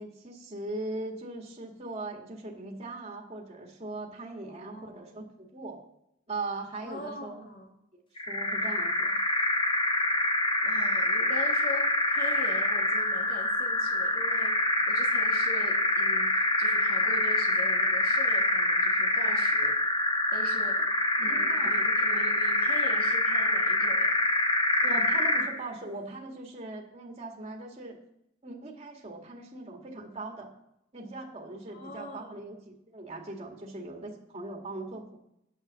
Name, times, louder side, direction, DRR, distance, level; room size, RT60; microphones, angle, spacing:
voice 1, 0.0-5.8 6.3-7.4 8.3-9.2 21.2-21.7 24.8-28.0 28.4-30.5 30.9-35.2, right 2 dB, 30° right, 0 dB, 1.9 m, -40 dB
voice 2, 4.5-5.2 6.8-7.7 10.6-14.6 14.9-19.8 20.3-20.8 21.2-24.1 31.7-32.4, left 1 dB, 50° left, 0 dB, 2.8 m, -42 dB
sound 1, 8.2-25.6, left 1 dB, 25° left, 1.4 m, -26 dB
9.1 x 8.0 x 7.4 m, 0.80 s
head